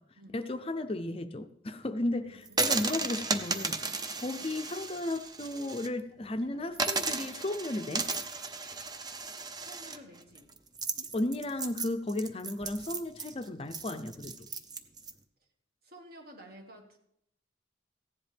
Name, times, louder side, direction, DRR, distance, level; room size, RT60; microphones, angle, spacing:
voice 1, 0.3-2.2 2.6-3.8 4.2-8.1 11.0-14.3, left 1 dB, 30° left, 8 dB, 0.5 m, -34 dB
voice 2, 2.1-2.7 4.3-4.6 9.6-10.5 15.8-17.0, right 1 dB, 55° right, 2 dB, 1.9 m, -52 dB
sound 1, 2.5-5.9 6.2-6.3 6.7-15.1, right 4 dB, 20° right, 0.6 m, -35 dB
15.5 x 10.5 x 3.4 m, 0.72 s
head